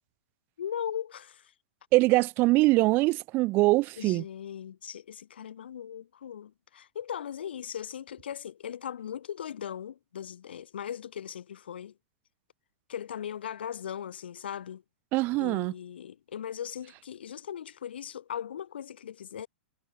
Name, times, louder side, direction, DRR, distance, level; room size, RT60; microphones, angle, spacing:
voice 1, 0.6-1.5 4.0-11.9 12.9-14.8 15.4-19.5, left 9 dB, 75° left, 2.0 m, -38 dB
voice 2, 1.9-4.2 15.1-15.7, right 21 dB, 35° right, 0.4 m, -23 dB
hypercardioid pair, 120°, 6 cm